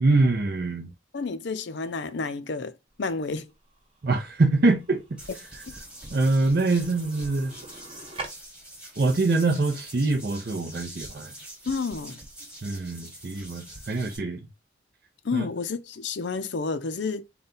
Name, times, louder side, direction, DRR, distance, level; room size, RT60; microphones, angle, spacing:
voice 1, 0.0-0.9 4.0-5.2 6.1-7.5 9.0-11.3 12.6-14.4 15.3-15.5, right 3 dB, 55° right, 0.6 m, -24 dB
voice 2, 1.1-3.5 5.7-5.8 11.7-12.2 15.2-17.2, left 4 dB, 65° left, 0.5 m, -30 dB
sound 1, 2.9-8.3, right 3 dB, 30° right, 1.0 m, -45 dB
sound 2, 5.2-14.2, right 1 dB, 5° right, 1.2 m, -44 dB
3.9 x 2.3 x 3.8 m
head